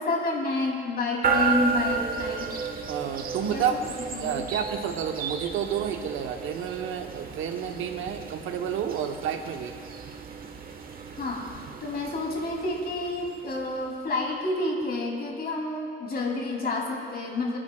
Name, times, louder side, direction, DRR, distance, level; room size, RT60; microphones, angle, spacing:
voice 1, 0.0-2.5 3.5-3.7 4.1-4.5 11.1-17.6, left 2 dB, 50° left, -1 dB, 3.1 m, -29 dB
sound 1, 1.2-14.2, right 5 dB, 45° right, 1.3 m, -33 dB
voice 2, 2.9-3.7 4.2-9.8, right 8 dB, 85° right, 5 dB, 1.1 m, -30 dB
24.5 x 10.5 x 2.4 m, 2.1 s
cardioid pair, 90°, 20 cm